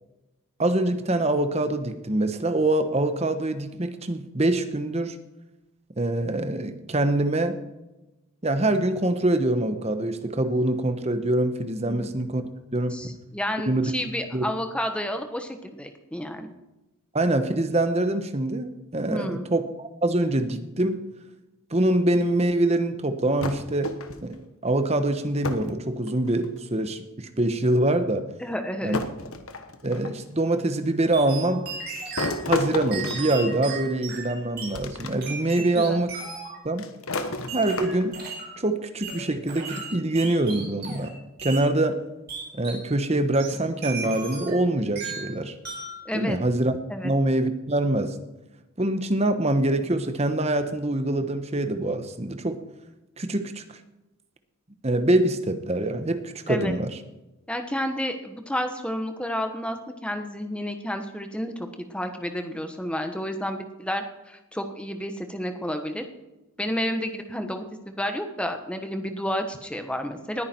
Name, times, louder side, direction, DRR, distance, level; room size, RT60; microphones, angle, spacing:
voice 1, 0.6-5.2 6.0-7.6 8.4-12.4 12.7-13.0 13.6-13.9 14.3-14.5 17.1-21.0 21.7-28.3 28.8-29.0 29.8-31.6 32.5-36.1 36.6-36.8 37.5-38.2 38.6-42.0 42.5-45.5 46.1-46.8 47.0-48.2 48.8-52.6 53.2-53.6 54.8-56.9, right 1 dB, 30° right, 9 dB, 1.0 m, -24 dB
voice 2, 12.9-16.5 19.1-19.5 28.4-29.0 35.8-36.0 46.0-46.4 46.9-47.1 56.5-56.7 57.5-59.8 60.0-66.0 66.6-70.4, equal, 5° left, 6 dB, 1.2 m, -31 dB
sound 1, 23.4-24.4 25.4-25.8 26.1-26.7 27.7-27.8 28.9-30.2 32.2-34.0 34.7-35.1 35.5-35.6 36.8-38.3, left 2 dB, 80° left, 1.2 m, -32 dB
sound 2, 31.1-32.4 32.9-34.8 35.2-36.6 37.5-38.6 39.0-41.1 41.4-41.7 42.3-42.9 43.3-44.6 45.0-45.3 45.6-46.0, right 4 dB, 50° right, 4.4 m, -36 dB
20.0 x 9.6 x 4.5 m, 1.0 s
head